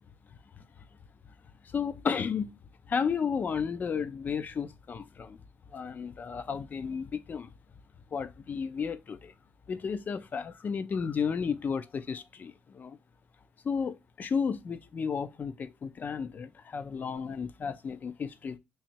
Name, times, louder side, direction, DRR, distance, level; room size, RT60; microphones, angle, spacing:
voice 1, 1.6-2.5 2.9-5.4 5.7-7.5 8.1-9.3 9.7-13.0 13.6-18.6, left 6 dB, 45° left, 0.5 m, -33 dB
3.1 x 2.7 x 4.4 m
cardioid pair, 80°, 4 cm